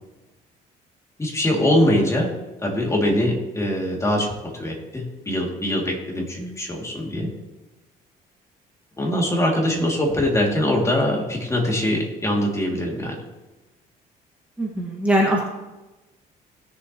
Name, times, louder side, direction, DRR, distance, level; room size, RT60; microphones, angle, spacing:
voice 1, 1.2-2.3 2.6-7.3 9.0-13.2, left 1 dB, 15° left, -1 dB, 2.7 m, -22 dB
voice 2, 14.6-15.4, equal, 10° right, -3 dB, 1.8 m, -22 dB
17.5 x 7.2 x 3.1 m, 1.1 s
cardioid pair, 110°, 17 cm